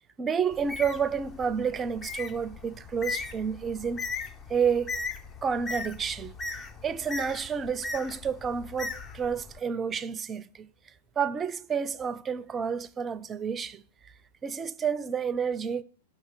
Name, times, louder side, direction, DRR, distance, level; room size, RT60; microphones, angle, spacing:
voice 1, 0.2-4.1 4.5-5.0 5.4-6.3 6.8-10.7 11.2-13.8 14.4-15.8, right 6 dB, 20° right, 0.5 m, -30 dB
Bird, 0.5-9.6, left 3 dB, 20° left, 0.7 m, -38 dB
7.9 x 6.1 x 6.5 m
hypercardioid pair, 115°, 0 cm